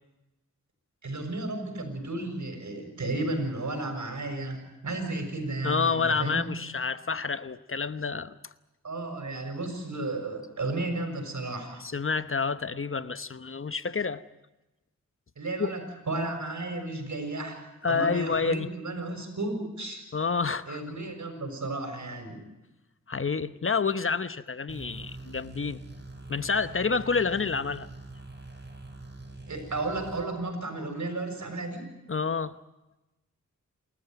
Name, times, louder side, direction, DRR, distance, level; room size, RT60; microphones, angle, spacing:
voice 1, 1.0-6.5 8.8-11.8 15.4-20.0 20.7-22.4 29.5-31.9, right 2 dB, 70° right, 5 dB, 6.6 m, -33 dB
voice 2, 5.6-8.5 11.8-14.2 15.6-15.7 17.8-18.7 20.1-20.8 23.1-25.8 26.3-27.9 32.1-32.6, left 5 dB, 45° left, 13 dB, 1.0 m, -28 dB
sound 1, 24.7-30.3, right 2 dB, 35° right, 5.7 m, -44 dB
28.5 x 14.0 x 9.2 m, 1.0 s
cardioid pair, 55°, 31 cm